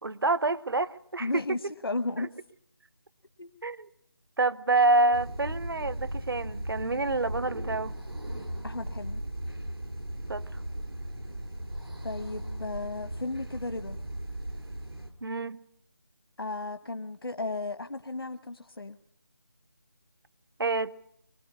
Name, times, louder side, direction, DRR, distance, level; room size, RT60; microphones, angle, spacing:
voice 1, 0.0-1.3 2.2-2.3 3.6-3.9 4.4-7.9 10.3-10.6 15.2-15.6 20.6-20.9, right 2 dB, 70° right, 18 dB, 0.9 m, -27 dB
voice 2, 1.2-2.3 3.4-3.5 8.6-9.2 12.0-14.0 16.4-19.0, left 2 dB, 70° left, 9 dB, 1.0 m, -34 dB
sound 1, 5.1-15.1, right 1 dB, 85° right, 4.6 m, -37 dB
23.5 x 20.0 x 9.6 m, 0.74 s
figure-of-eight pair, 160°, 13 cm